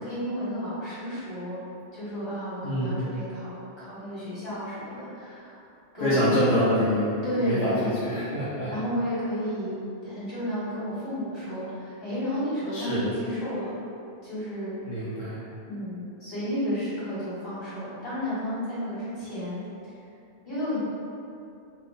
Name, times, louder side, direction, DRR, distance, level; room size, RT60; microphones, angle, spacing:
voice 1, 0.0-1.6 1.9-5.6 5.9-6.2 7.2-7.8 8.7-9.7 10.0-13.7 14.2-14.7 15.6-19.6 20.4-20.8, equal, 25° left, -12 dB, 1.4 m, -32 dB
voice 2, 2.6-2.9 6.0-8.7 12.7-13.0 14.9-15.4, equal, 70° left, -10 dB, 0.9 m, -25 dB
2.7 x 2.5 x 3.6 m, 2.6 s
omnidirectional pair, 1.1 m